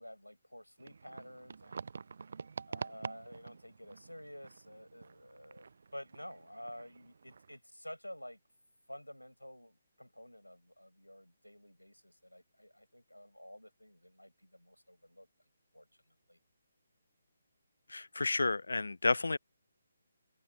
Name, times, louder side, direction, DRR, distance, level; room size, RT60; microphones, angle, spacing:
voice 1, 0.0-1.9 2.7-8.4 8.9-15.3 15.7-15.9 16.3-16.4, equal, 90° left, 7.1 m, -51 dB
sound 1, 0.8-7.6, right 5 dB, 55° right, 0.6 m, -47 dB
voice 2, 17.9-19.4, left 3 dB, 70° left, 0.4 m, -31 dB
open air
figure-of-eight pair, 140°, 0 cm